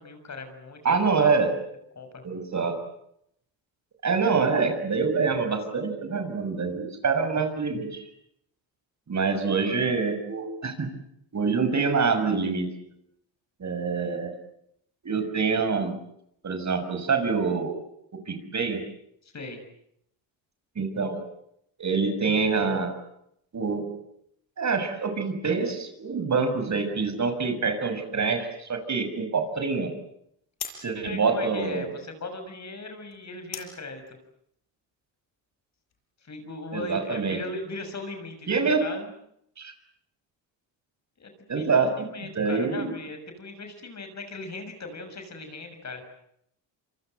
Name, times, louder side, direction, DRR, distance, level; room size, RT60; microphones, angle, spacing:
voice 1, 0.0-1.4 1.9-2.2 19.2-19.6 31.0-34.2 36.2-39.1 41.2-46.0, left 3 dB, 35° left, 7 dB, 6.8 m, -38 dB
voice 2, 0.8-1.5 2.2-2.8 4.0-8.0 9.1-10.9 11.3-12.7 13.6-14.3 15.0-15.9 16.4-17.8 18.1-18.8 20.7-21.2 21.8-22.9 23.5-23.9 24.6-29.9 30.8-31.9 36.7-37.4 38.5-38.8 39.6-39.7 41.5-42.1 42.3-42.9, right 4 dB, 40° right, 7 dB, 6.5 m, -26 dB
sound 1, 27.4-36.0, left 7 dB, 55° left, 6.7 m, -47 dB
27.5 x 24.5 x 8.0 m, 0.74 s
supercardioid pair, 85°, 45 cm